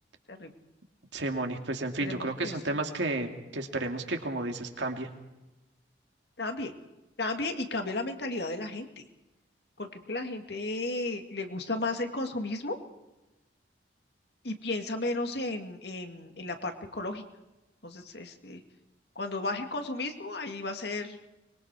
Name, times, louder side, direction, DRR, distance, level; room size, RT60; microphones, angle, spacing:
voice 1, 1.1-5.1, right 2 dB, 80° right, 4 dB, 2.5 m, -32 dB
voice 2, 2.0-2.8 6.4-6.7 7.2-8.9 9.8-12.8 14.4-17.2 17.8-18.6 19.2-21.2, left 2 dB, 65° left, 5 dB, 2.1 m, -34 dB
24.5 x 22.0 x 4.8 m, 1.0 s
head